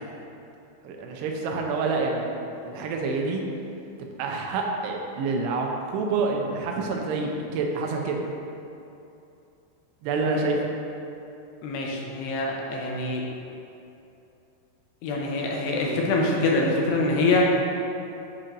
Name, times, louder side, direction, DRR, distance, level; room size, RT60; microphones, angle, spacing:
voice 1, 0.8-3.4 4.2-8.2 10.0-10.6, right 3 dB, 85° right, 1 dB, 2.8 m, -27 dB
voice 2, 11.6-13.3 15.0-17.5, left 2 dB, 85° left, -1 dB, 2.9 m, -24 dB
8.7 x 5.4 x 2.6 m, 2.8 s
omnidirectional pair, 4.7 m